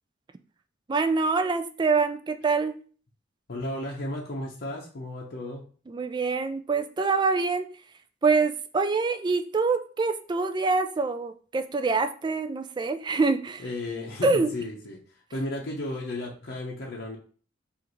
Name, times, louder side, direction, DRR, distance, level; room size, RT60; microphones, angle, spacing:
voice 1, 0.9-2.7 5.9-7.6 8.2-13.6 14.2-14.5, right 4 dB, 25° right, 9 dB, 0.3 m, -25 dB
voice 2, 3.5-5.6 13.6-15.0 15.3-17.2, left 1 dB, 55° left, -2 dB, 0.7 m, -34 dB
4.9 x 2.5 x 3.0 m, 0.41 s
head